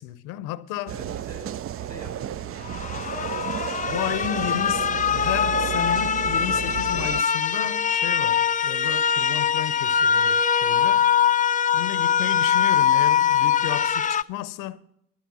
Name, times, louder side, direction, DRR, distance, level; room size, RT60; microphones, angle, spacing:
voice 1, 0.0-0.9 3.9-11.1 11.7-14.8, left 13 dB, 75° left, 0.7 m, -33 dB
sound 1, 0.9-7.2, right 10 dB, 45° right, 0.5 m, -32 dB
voice 2, 0.9-3.3, right 1 dB, 60° right, 6.5 m, -46 dB
sound 2, 2.6-14.2, left 8 dB, 25° left, 0.4 m, -22 dB
12.5 x 10.5 x 5.8 m
hypercardioid pair, 50°, 33 cm